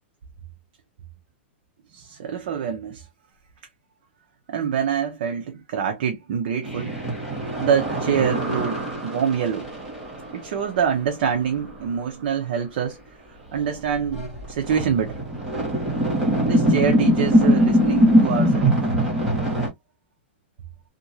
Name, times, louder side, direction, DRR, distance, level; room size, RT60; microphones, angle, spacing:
voice 1, 1.9-3.1 4.5-7.0 7.6-9.7 10.3-13.0 13.3-15.2 16.4-18.7, right 8 dB, 50° right, 0.7 m, -25 dB
sound 1, 6.6-10.5 11.6-11.7 13.6-13.7 14.0-19.7, equal, 5° right, 1.3 m, -22 dB
2.9 x 2.5 x 2.6 m
supercardioid pair, 165°, 6 cm